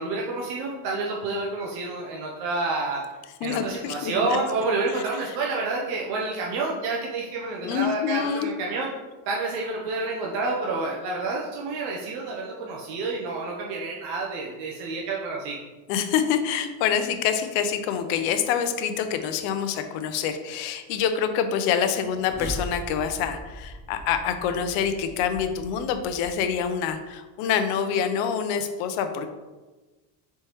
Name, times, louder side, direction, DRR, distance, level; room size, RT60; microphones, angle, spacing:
voice 1, 0.0-3.0 3.4-8.9 9.3-15.6, right 3 dB, 75° right, -2 dB, 0.8 m, -29 dB
voice 2, 3.4-4.4 7.6-8.5 15.9-29.3, left 8 dB, 75° left, 8 dB, 0.6 m, -26 dB
sound 1, 21.8-27.1, equal, 5° right, 0.4 m, -40 dB
4.3 x 3.4 x 3.0 m, 1.2 s
cardioid pair, 135°, 45 cm